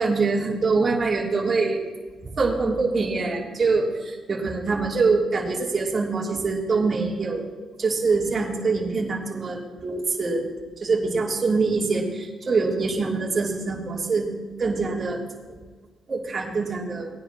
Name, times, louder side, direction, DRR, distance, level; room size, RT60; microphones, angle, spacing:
voice 1, 0.0-1.8 2.4-7.4 7.8-10.5 10.8-14.3 14.6-15.2 16.1-17.1, right 4 dB, 35° right, -2 dB, 2.8 m, -24 dB
19.0 x 10.0 x 2.9 m, 1.3 s
cardioid pair, 90°, 0 cm